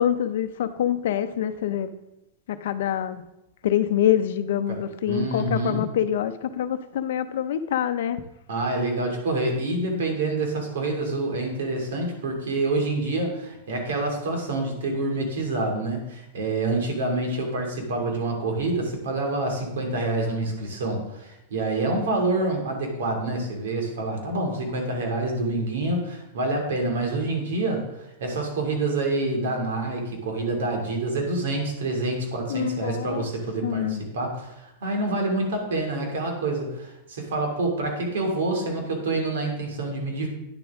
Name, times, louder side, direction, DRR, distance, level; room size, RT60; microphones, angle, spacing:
voice 1, 0.0-1.9 2.5-3.2 3.6-8.2 32.5-33.3 33.6-34.0, left 10 dB, 65° left, 10 dB, 0.6 m, -25 dB
voice 2, 5.1-5.8 8.5-40.3, right 2 dB, 85° right, 2 dB, 2.6 m, -27 dB
9.9 x 7.0 x 3.6 m, 0.89 s
supercardioid pair, 180°, 0 cm